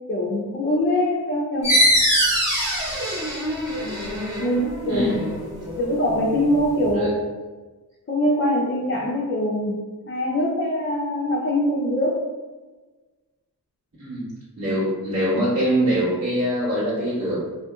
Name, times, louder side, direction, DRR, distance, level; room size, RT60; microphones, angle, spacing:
voice 1, 0.1-1.8 4.4-5.2 5.8-7.3 8.1-9.8 10.1-12.2, left 1 dB, 30° left, -3 dB, 0.5 m, -23 dB
sound 1, 1.6-6.9, equal, 30° right, 1.1 m, -23 dB
voice 2, 14.0-14.3 14.6-17.4, right 1 dB, 45° right, -13 dB, 1.4 m, -23 dB
2.7 x 2.6 x 2.3 m, 1.3 s
wide cardioid pair, 70°, 39 cm